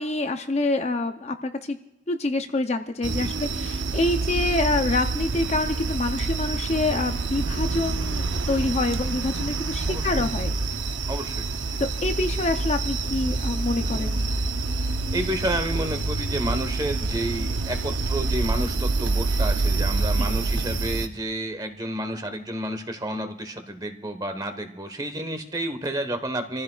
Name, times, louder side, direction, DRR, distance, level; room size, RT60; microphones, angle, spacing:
voice 1, 0.0-1.8 2.1-10.6 11.8-14.2 20.2-20.3, left 2 dB, 35° left, 6 dB, 0.6 m, -26 dB
voice 2, 3.0-3.4 9.9-10.2 11.1-11.4 15.1-26.6, right 1 dB, 20° right, 7 dB, 1.2 m, -30 dB
sound 1, 3.0-21.1, right 3 dB, 85° right, 0.8 m, -27 dB
27.5 x 14.5 x 2.4 m, 0.90 s
head